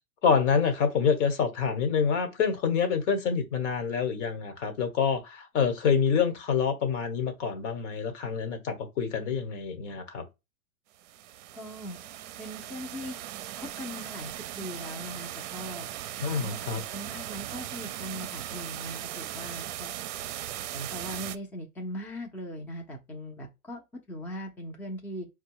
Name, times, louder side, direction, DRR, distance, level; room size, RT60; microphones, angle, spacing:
voice 1, 0.2-10.2 16.2-16.8, left 6 dB, 60° left, 1.3 m, -27 dB
sound 1, 11.0-21.4, right 13 dB, 55° right, 0.6 m, -38 dB
voice 2, 11.5-12.0 12.4-13.2 13.6-15.9 16.3-16.6 16.9-19.9 20.7-25.3, equal, 5° left, 0.6 m, -40 dB
4.7 x 2.3 x 4.6 m
hypercardioid pair, 115°, 42 cm